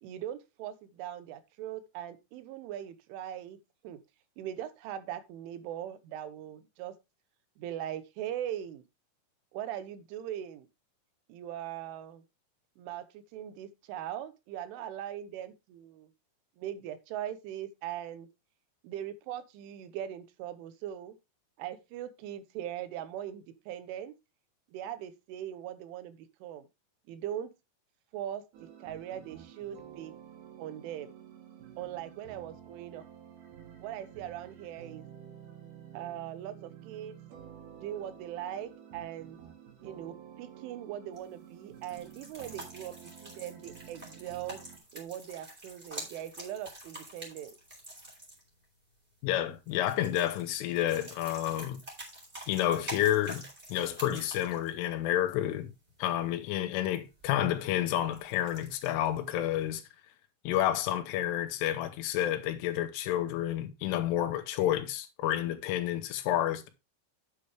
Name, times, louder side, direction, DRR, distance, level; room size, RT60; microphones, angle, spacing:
voice 1, 0.0-3.6 3.8-4.0 4.4-6.9 7.6-8.8 9.5-10.7 11.3-12.2 12.8-16.1 16.6-18.3 18.8-21.2 21.6-24.1 24.7-26.7 27.1-27.5 28.1-30.1 30.6-31.1 31.8-33.0 33.8-35.1 35.9-37.2 37.8-39.4 39.8-44.6 44.9-47.5, right 11 dB, 85° right, 3.5 m, -40 dB
sound 1, 28.5-44.8, right 9 dB, 60° right, 3.5 m, -51 dB
sound 2, 41.1-59.7, right 1 dB, 10° right, 3.7 m, -48 dB
voice 2, 49.2-51.8 52.5-53.4 53.7-55.7 56.0-59.8 60.5-66.7, left 12 dB, 85° left, 3.6 m, -30 dB
9.5 x 8.3 x 3.3 m
omnidirectional pair, 5.5 m